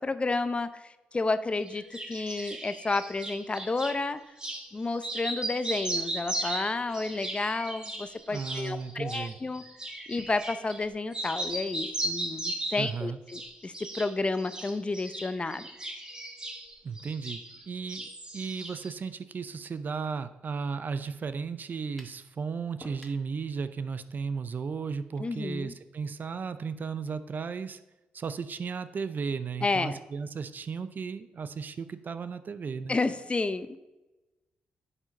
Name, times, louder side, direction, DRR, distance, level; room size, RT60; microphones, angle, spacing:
voice 1, 0.0-4.2 4.7-9.6 10.1-15.7 25.2-25.7 29.6-30.0 32.9-33.8, left 3 dB, 30° left, 12 dB, 0.7 m, -31 dB
sound 1, 1.7-4.0 4.4-4.6 5.0-10.8 11.1-12.9 13.3-14.1 14.4-17.6 17.9-18.9, right 1 dB, 20° right, 1.8 m, -36 dB
voice 2, 8.3-9.3 12.8-13.2 16.8-18.1 18.3-27.8 28.1-33.0, right 5 dB, 50° right, 12 dB, 0.6 m, -35 dB
sound 2, 22.0-22.2 22.8-23.3, equal, 5° left, 1.6 m, -49 dB
9.7 x 5.0 x 5.3 m, 1.0 s
supercardioid pair, 60°, 4 cm